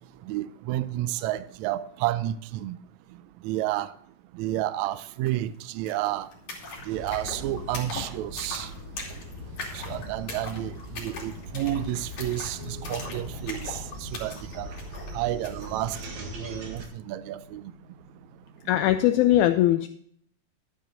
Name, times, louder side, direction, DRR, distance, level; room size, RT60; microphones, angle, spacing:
voice 1, 0.3-2.8 3.4-3.9 4.3-6.3 6.9-8.7 9.7-14.7 15.1-17.6, right 14 dB, 80° right, 1.7 m, -31 dB
sound 1, 5.3-5.4 5.6-15.8, left 3 dB, 60° left, 4.1 m, -41 dB
sound 2, 6.9-16.8, equal, 65° right, 3.0 m, -40 dB
sound 3, 12.6-19.1, equal, 35° right, 3.5 m, -48 dB
voice 2, 18.7-19.9, left 13 dB, 80° left, 1.9 m, -20 dB
12.0 x 9.2 x 3.8 m
omnidirectional pair, 3.6 m